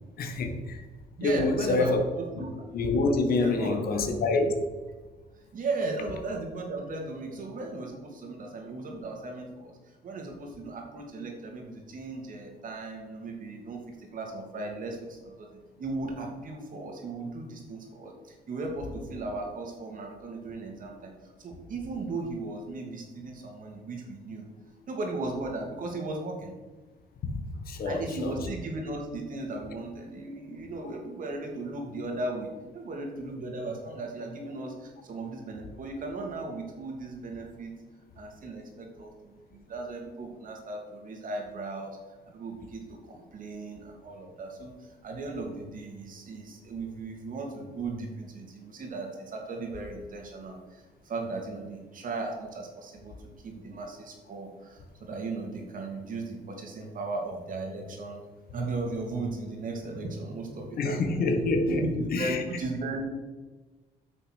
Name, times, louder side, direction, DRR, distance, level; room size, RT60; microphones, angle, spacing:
voice 1, 0.2-0.8 1.2-2.0 2.7-4.5 27.2-27.3 27.7-28.4 60.8-61.8 62.1-62.4, left 3 dB, 60° left, 5 dB, 1.7 m, -26 dB
voice 2, 1.2-2.5 3.4-4.1 5.5-9.7 10.0-21.1 21.4-24.5 24.9-26.5 27.8-37.7 38.2-42.0 42.3-58.2 58.5-61.0 61.8-63.0, right 2 dB, 50° right, 2 dB, 2.8 m, -36 dB
9.7 x 6.5 x 6.5 m, 1.2 s
cardioid pair, 100°, 17 cm